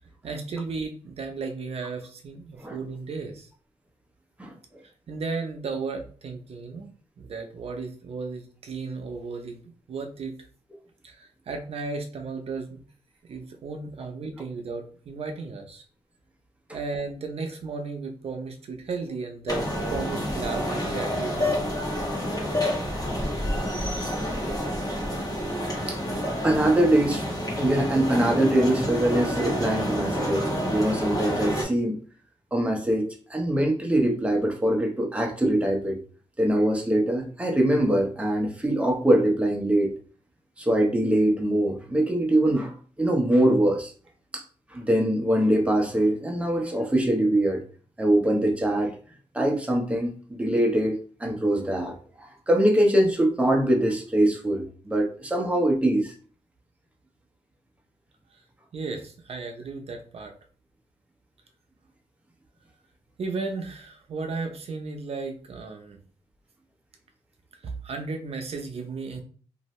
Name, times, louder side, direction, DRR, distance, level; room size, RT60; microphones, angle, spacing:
voice 1, 0.2-3.5 5.1-6.9 7.2-10.5 11.0-12.8 13.3-15.8 16.7-21.7 58.7-60.3 63.2-66.0 67.6-69.2, right 4 dB, 65° right, 4 dB, 0.7 m, -34 dB
sound 1, 19.5-31.6, equal, 35° left, 1.4 m, -28 dB
voice 2, 26.4-27.3 27.6-32.0 32.5-36.0 36.4-39.9 40.6-43.9 44.3-44.4 44.7-47.6 48.0-49.0 49.3-56.1, right 1 dB, 10° right, 1 dB, 0.8 m, -23 dB
2.7 x 2.6 x 3.1 m, 0.41 s
cardioid pair, 80°, 11 cm